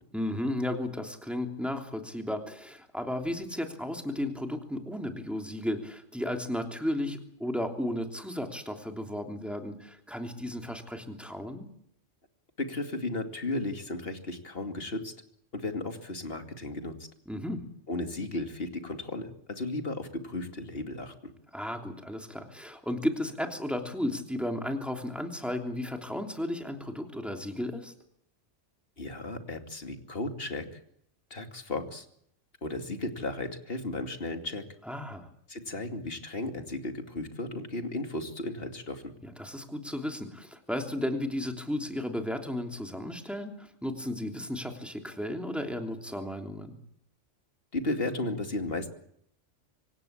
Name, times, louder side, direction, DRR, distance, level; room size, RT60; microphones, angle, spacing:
voice 1, 0.1-11.7 17.3-17.6 21.5-27.9 34.8-35.3 39.2-46.8, left 1 dB, ahead, 4 dB, 3.1 m, -34 dB
voice 2, 12.6-15.1 15.5-17.0 17.9-21.1 29.0-30.8 31.3-32.1 32.6-34.6 35.5-39.1 47.7-48.9, left 2 dB, 50° left, 6 dB, 2.8 m, -34 dB
25.5 x 16.5 x 8.8 m, 0.71 s
omnidirectional pair, 1.3 m